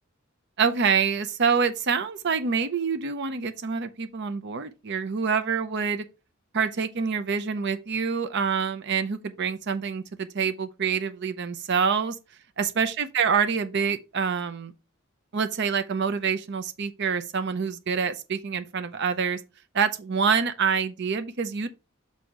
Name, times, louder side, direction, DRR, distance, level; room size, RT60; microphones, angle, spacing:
voice 1, 0.6-6.0 6.5-12.2 12.6-14.7 15.3-19.4 19.7-21.7, right 6 dB, 55° right, 0.6 m, -26 dB
6.3 x 4.1 x 4.9 m
head